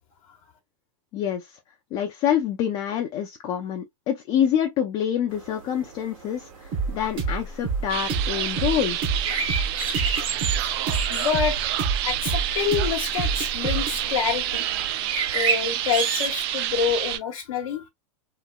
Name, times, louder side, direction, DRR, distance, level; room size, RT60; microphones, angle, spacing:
voice 1, 1.1-1.6 1.9-9.0, left 9 dB, 30° left, 0.4 m, -26 dB
sound 1, 5.3-16.3, right 5 dB, 80° right, 1.4 m, -33 dB
sound 2, 6.7-14.0, right 4 dB, 30° right, 0.9 m, -28 dB
sound 3, 7.9-17.2, right 12 dB, 50° right, 0.4 m, -28 dB
voice 2, 11.1-11.6 12.0-14.7 15.3-17.9, left 7 dB, 85° left, 0.9 m, -27 dB
3.0 x 3.0 x 2.2 m
supercardioid pair, 145°, 17 cm